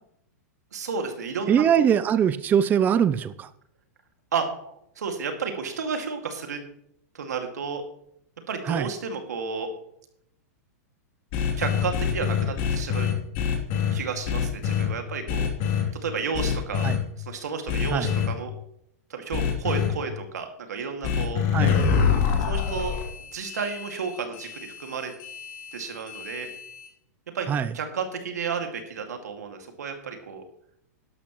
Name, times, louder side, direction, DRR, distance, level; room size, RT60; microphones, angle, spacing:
voice 1, 0.7-1.9 4.3-6.6 7.1-7.8 8.5-9.7 11.6-13.1 13.9-15.5 16.0-16.9 17.2-18.5 19.1-21.4 22.5-23.0 23.3-25.1 25.7-26.5 27.3-27.5 27.7-30.4, right 5 dB, 90° right, 5 dB, 2.1 m, -32 dB
voice 2, 1.5-3.5 8.7-8.9 16.8-17.0 17.9-18.1 21.5-21.7 27.5-27.7, right 8 dB, 20° right, 14 dB, 0.4 m, -22 dB
sound 1, 11.3-13.9 14.2-14.8 15.3-15.8 16.3-17.0 17.7-18.2 19.3-19.9 21.0-26.9, left 7 dB, 50° left, 2.8 m, -26 dB
12.0 x 12.0 x 3.0 m, 0.74 s
hypercardioid pair, 130°, 9 cm